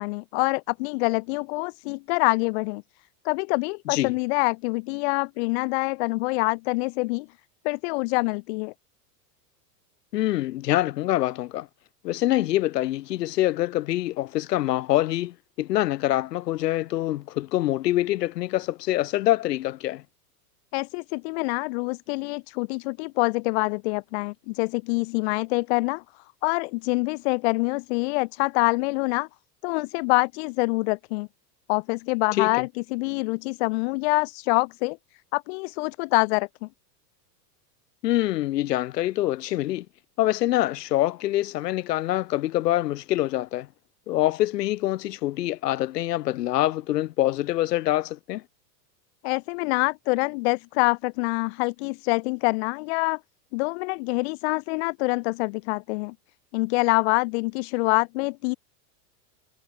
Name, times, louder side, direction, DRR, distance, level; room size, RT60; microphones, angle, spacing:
voice 1, 0.0-2.8 3.2-7.3 7.6-8.7 20.7-26.0 26.4-29.3 29.6-31.3 31.7-35.0 35.3-36.7 49.2-53.2 53.5-56.1 56.5-58.5, left 28 dB, 40° left, 1.1 m, -25 dB
voice 2, 10.1-11.7 12.0-20.0 32.4-32.7 38.0-39.9 40.2-43.7 44.1-48.4, left 15 dB, 80° left, 2.9 m, -25 dB
supercardioid pair, 170°, 48 cm